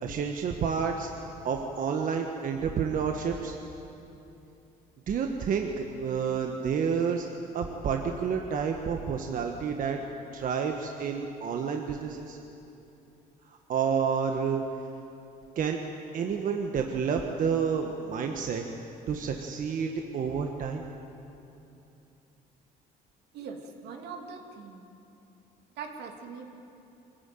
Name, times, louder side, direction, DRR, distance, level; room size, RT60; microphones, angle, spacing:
voice 1, 0.0-3.6 5.1-7.3 7.5-10.0 10.3-12.4 13.5-14.6 15.5-15.8 16.1-18.6 19.1-20.8, right 6 dB, 55° right, 3 dB, 1.5 m, -29 dB
voice 2, 23.3-24.9 25.8-26.6, right 5 dB, 80° right, 3 dB, 2.7 m, -41 dB
24.0 x 14.5 x 9.3 m, 2.8 s
cardioid pair, 110°, 17 cm